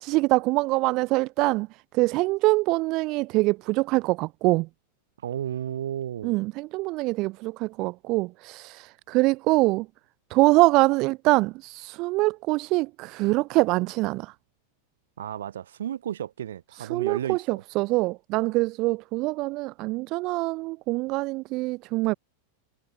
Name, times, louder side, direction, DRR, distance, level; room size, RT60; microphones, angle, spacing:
voice 1, 0.0-4.7 6.2-9.9 10.3-14.3 16.8-22.1, right 22 dB, 40° right, 0.3 m, -24 dB
voice 2, 5.2-6.4 15.2-17.6, right 10 dB, 60° right, 1.9 m, -33 dB
figure-of-eight pair, 90°, 0 cm